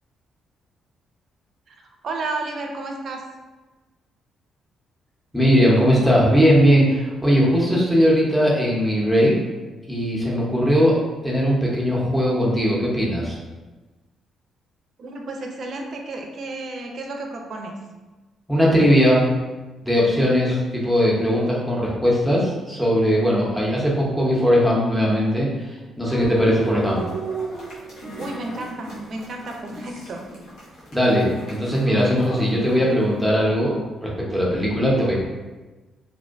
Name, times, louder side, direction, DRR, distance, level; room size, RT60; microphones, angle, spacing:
voice 1, 2.0-3.2 15.0-17.8 28.2-30.2, right 2 dB, 55° right, 2 dB, 0.4 m, -32 dB
voice 2, 5.3-9.3 9.9-13.4 18.5-19.3 19.8-27.0 30.9-35.1, equal, ahead, -5 dB, 0.7 m, -19 dB
sound 1, 26.0-33.0, right 2 dB, 75° left, 0.8 m, -35 dB
2.5 x 2.1 x 2.4 m, 1.2 s
cardioid pair, 90°, 0 cm